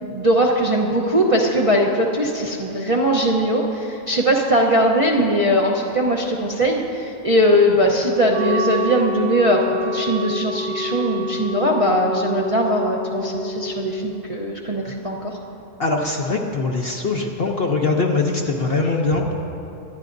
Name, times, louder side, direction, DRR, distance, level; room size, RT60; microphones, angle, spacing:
voice 1, 0.0-15.4, equal, 30° right, -2 dB, 0.7 m, -20 dB
Wind instrument woodwind instrument, 8.3-14.1, left 2 dB, 50° right, 2.4 m, -28 dB
voice 2, 15.8-19.4, left 3 dB, 50° left, 1 dB, 0.8 m, -22 dB
25.0 x 10.5 x 2.6 m, 2.8 s
omnidirectional pair, 1.6 m